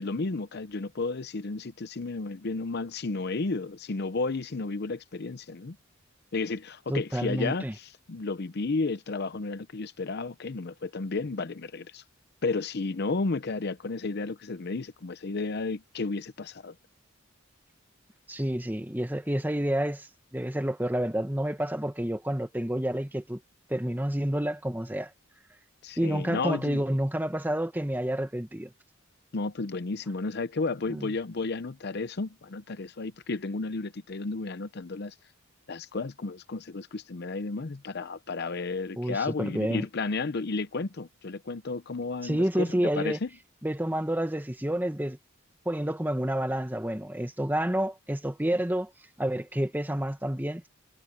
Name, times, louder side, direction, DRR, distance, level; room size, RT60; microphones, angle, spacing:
voice 1, 0.0-5.8 6.3-12.0 12.4-16.7 25.8-26.8 29.3-35.1 35.7-43.3, left 3 dB, 50° left, 0.6 m, -32 dB
voice 2, 6.9-7.7 18.3-20.1 20.3-23.4 23.7-25.1 26.0-28.7 30.9-31.1 39.0-39.8 42.2-43.2 43.6-45.2 45.6-48.9 49.2-50.7, right 1 dB, 10° right, 1.5 m, -29 dB
head